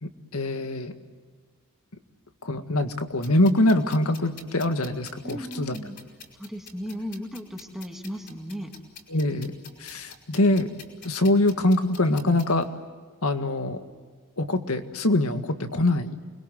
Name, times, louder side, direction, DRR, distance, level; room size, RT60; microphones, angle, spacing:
voice 1, 0.0-0.9 2.4-5.8 9.1-9.5 9.8-10.7 11.0-12.7 13.2-13.8 14.4-16.2, left 1 dB, 85° left, 7 dB, 1.9 m, -24 dB
sound 1, 3.2-12.6, left 6 dB, 55° left, 5.1 m, -48 dB
voice 2, 5.2-6.0 6.4-8.7, equal, ahead, 2 dB, 2.2 m, -36 dB
29.0 x 22.0 x 7.7 m, 1.5 s
head